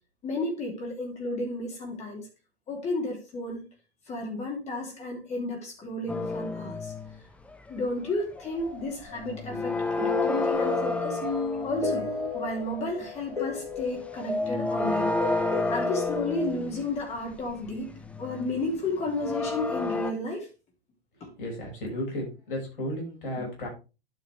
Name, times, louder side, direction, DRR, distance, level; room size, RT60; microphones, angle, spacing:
voice 1, 0.2-2.2 2.7-3.6 4.1-6.9 7.7-11.2 11.6-12.1 12.3-15.1 15.7-20.5 21.2-21.3, left 2 dB, 20° left, 2.8 m, -32 dB
sound 1, 6.1-7.2 7.5-7.8 8.1-8.8 9.1-12.1 13.8-13.9 14.1-20.1, left 2 dB, 5° left, 0.7 m, -31 dB
sound 2, 8.4-16.5, left 4 dB, 80° left, 4.6 m, -32 dB
voice 2, 21.4-23.7, left 1 dB, 60° left, 5.9 m, -34 dB
12.0 x 5.7 x 3.4 m
figure-of-eight pair, 105°, 31 cm